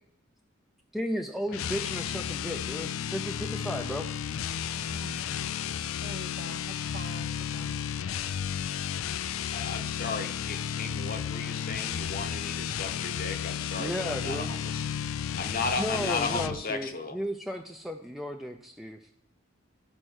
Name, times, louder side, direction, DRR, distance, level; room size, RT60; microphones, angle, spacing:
voice 1, 0.9-4.1 13.8-14.6 15.7-19.0, equal, ahead, 3 dB, 0.5 m, -34 dB
sound 1, 1.5-16.6, left 8 dB, 80° left, 0.4 m, -33 dB
voice 2, 4.7-5.7 6.0-7.8, right 3 dB, 45° right, 9 dB, 0.6 m, -46 dB
voice 3, 9.5-14.8 15.4-17.2, left 4 dB, 45° left, 7 dB, 0.9 m, -35 dB
12.5 x 4.4 x 6.3 m, 0.68 s
head